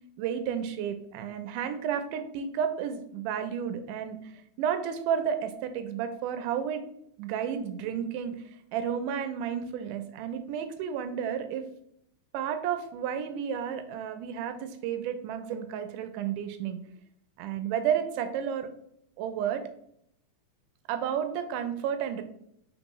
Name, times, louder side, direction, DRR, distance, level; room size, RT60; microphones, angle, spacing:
voice 1, 0.2-4.2 4.6-6.8 7.2-8.4 8.7-11.6 12.3-16.8 17.4-18.7 19.2-19.6 20.9-22.2, right 8 dB, 85° right, 8 dB, 2.1 m, -31 dB
4.4 x 3.8 x 3.0 m, 0.71 s
omnidirectional pair, 3.6 m